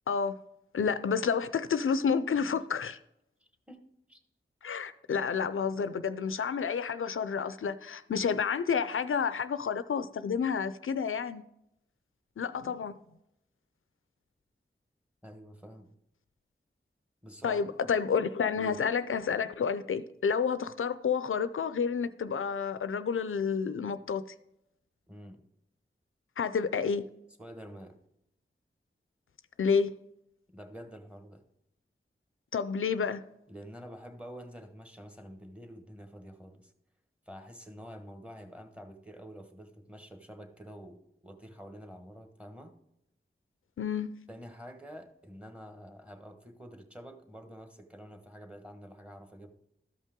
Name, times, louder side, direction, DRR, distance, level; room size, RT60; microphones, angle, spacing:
voice 1, 0.7-3.0 4.6-11.4 12.4-13.0 17.4-24.2 26.4-27.0 29.6-29.9 32.5-33.2 43.8-44.1, left 6 dB, 80° left, 0.4 m, -30 dB
voice 2, 15.2-15.9 17.2-17.9 18.6-18.8 25.1-25.4 27.4-28.0 30.5-31.4 33.5-36.7 37.3-42.7 44.3-49.5, equal, 5° right, 1.2 m, -48 dB
13.0 x 5.5 x 3.7 m
wide cardioid pair, 45°, 21 cm